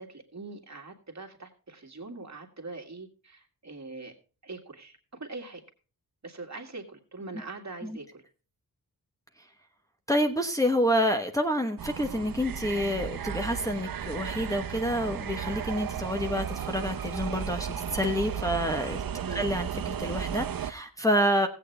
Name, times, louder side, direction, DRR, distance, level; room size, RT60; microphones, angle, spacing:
voice 1, 0.0-4.1 4.4-5.6 6.2-8.2 19.2-19.5, right 3 dB, 45° right, 2 dB, 2.1 m, -42 dB
voice 2, 10.1-19.0 19.3-21.5, equal, 10° left, 2 dB, 1.1 m, -28 dB
sound 1, 11.8-20.7, right 8 dB, 65° right, 0.8 m, -34 dB
16.5 x 8.4 x 3.3 m, 0.36 s
wide cardioid pair, 100°, 38 cm